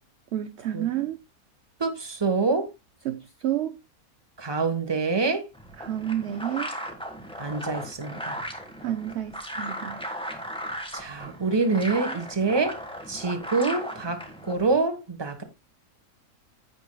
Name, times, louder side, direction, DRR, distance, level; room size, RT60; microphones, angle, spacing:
voice 1, 0.3-1.2 3.0-3.8 5.8-6.7 8.8-10.1, right 11 dB, 60° right, 0.7 m, -30 dB
voice 2, 1.8-2.7 4.4-5.5 7.4-8.4 10.9-12.8 13.1-15.4, right 4 dB, 20° right, 1.1 m, -26 dB
sound 1, 5.5-14.8, equal, 5° left, 1.4 m, -36 dB
15.5 x 5.5 x 2.2 m
omnidirectional pair, 1.6 m